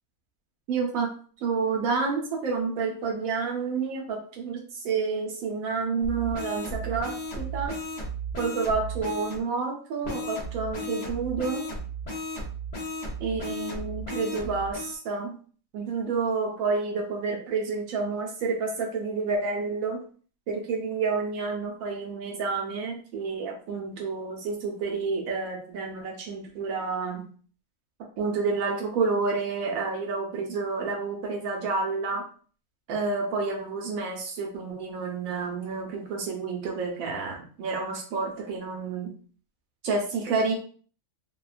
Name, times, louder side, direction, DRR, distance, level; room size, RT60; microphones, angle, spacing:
voice 1, 0.7-1.1 1.4-7.7 8.4-11.7 13.2-15.3 15.7-20.0 20.5-27.2 28.2-32.2 32.9-39.1 39.8-40.5, right 4 dB, 85° right, 1 dB, 1.1 m, -29 dB
sound 1, 6.0-9.4 10.0-14.9, right 1 dB, 40° left, 0.7 m, -35 dB
2.6 x 2.2 x 2.3 m, 0.43 s
omnidirectional pair, 1.4 m